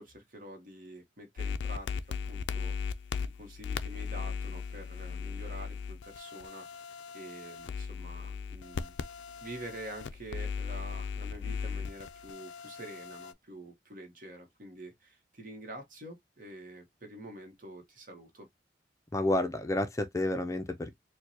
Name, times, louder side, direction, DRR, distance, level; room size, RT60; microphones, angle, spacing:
voice 1, 0.0-3.0 3.4-6.9 7.1-8.9 9.4-18.5, right 1 dB, 50° right, 1.1 m, -47 dB
sound 1, 1.4-13.3, left 6 dB, 80° left, 0.4 m, -38 dB
voice 2, 19.1-20.9, left 1 dB, 20° left, 0.5 m, -30 dB
4.5 x 2.2 x 2.7 m
head